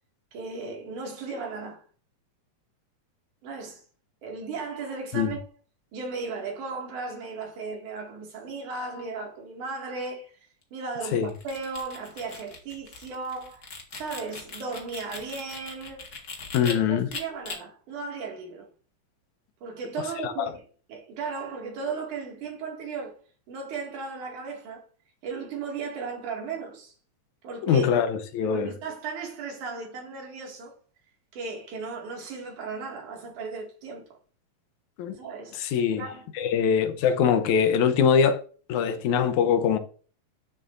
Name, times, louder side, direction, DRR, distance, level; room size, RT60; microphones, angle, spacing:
voice 1, 0.3-1.8 3.4-3.8 4.2-5.4 5.9-10.4 10.7-16.0 16.6-18.7 19.6-20.6 20.9-23.2 23.5-24.8 25.2-26.9 27.4-27.9 28.5-30.7 31.3-34.1 35.2-36.3, right 4 dB, 85° right, 3.7 m, -36 dB
sound 1, 11.2-16.7 17.1-17.6, left 4 dB, 40° left, 1.7 m, -40 dB
voice 2, 16.5-17.1 20.2-20.3 27.7-28.7 35.0-35.2 35.5-36.1 36.4-38.4 38.7-39.8, left 7 dB, 80° left, 2.2 m, -23 dB
12.5 x 7.0 x 2.6 m
omnidirectional pair, 3.4 m